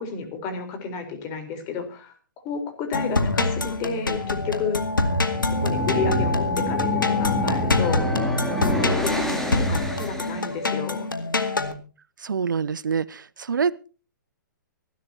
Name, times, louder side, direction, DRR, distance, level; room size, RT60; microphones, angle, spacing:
voice 1, 0.0-2.2 2.4-5.1 5.4-8.1 8.6-11.1, left 5 dB, 30° left, 7 dB, 4.1 m, -31 dB
sound 1, 2.9-11.7, left 3 dB, 85° left, 2.2 m, -25 dB
sound 2, 5.2-10.6, left 1 dB, 5° left, 2.8 m, -28 dB
voice 2, 12.2-13.9, right 6 dB, 70° right, 20 dB, 0.6 m, -26 dB
25.5 x 12.0 x 2.8 m, 0.35 s
figure-of-eight pair, 125°, 11 cm